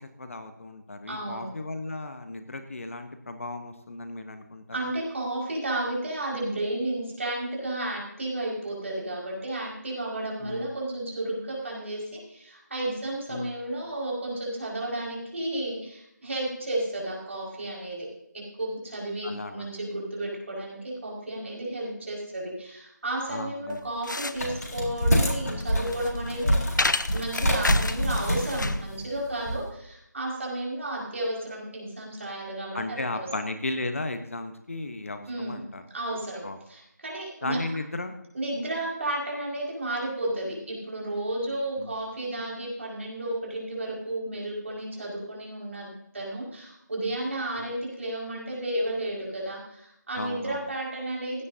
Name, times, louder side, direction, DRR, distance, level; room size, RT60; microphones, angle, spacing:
voice 1, 0.0-4.8 10.4-10.7 13.3-13.5 19.2-19.7 23.3-23.8 32.7-35.8 36.4-36.6 37.4-38.1 41.8-41.9 47.6-47.7 50.1-50.7, left 2 dB, 45° left, 8 dB, 1.1 m, -35 dB
voice 2, 1.1-1.5 4.7-18.1 18.3-26.6 27.1-33.3 35.3-35.6 35.9-37.6 38.3-45.9 46.1-51.4, right 1 dB, 45° right, -3 dB, 5.4 m, -32 dB
sound 1, 23.7-28.9, left 2 dB, 90° left, 0.8 m, -31 dB
sound 2, 24.4-29.6, equal, 65° left, 3.9 m, -26 dB
16.5 x 10.0 x 2.8 m, 0.78 s
figure-of-eight pair, 170°, 10 cm